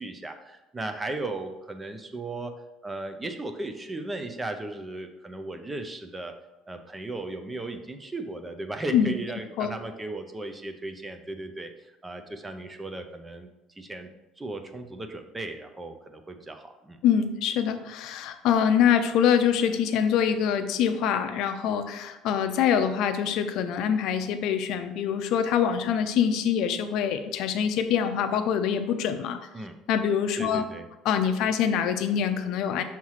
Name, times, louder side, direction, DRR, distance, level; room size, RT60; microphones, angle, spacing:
voice 1, 0.0-2.5 2.8-6.3 6.7-14.1 14.4-17.0 29.5-29.7 30.4-30.9, right 2 dB, 15° right, 7 dB, 0.5 m, -36 dB
voice 2, 17.0-29.4 29.9-30.6 31.0-32.8, left 8 dB, 60° left, 7 dB, 0.5 m, -24 dB
5.8 x 3.1 x 5.6 m, 0.99 s
cardioid pair, 155°, 0 cm